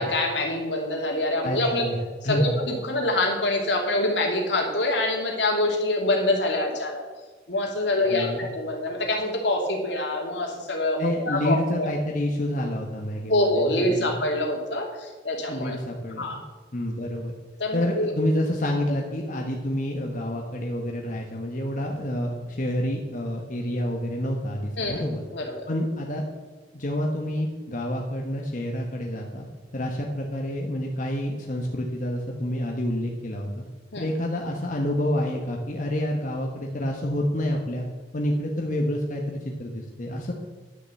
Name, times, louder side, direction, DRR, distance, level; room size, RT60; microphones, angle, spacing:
voice 1, 0.0-1.8 2.2-7.1 7.5-11.9 13.3-15.7 16.2-16.4 17.6-18.1 24.8-25.0 25.3-25.7 33.9-34.1, left 1 dB, 75° left, 2 dB, 2.5 m, -25 dB
voice 2, 1.4-2.6 8.0-8.4 11.0-14.2 15.5-16.3 16.7-17.3 17.7-25.3 25.7-26.2 26.7-29.5 29.7-33.6 34.0-37.9 38.1-40.3, left 1 dB, 45° left, 0 dB, 1.3 m, -28 dB
11.5 x 6.7 x 7.7 m, 1.3 s
head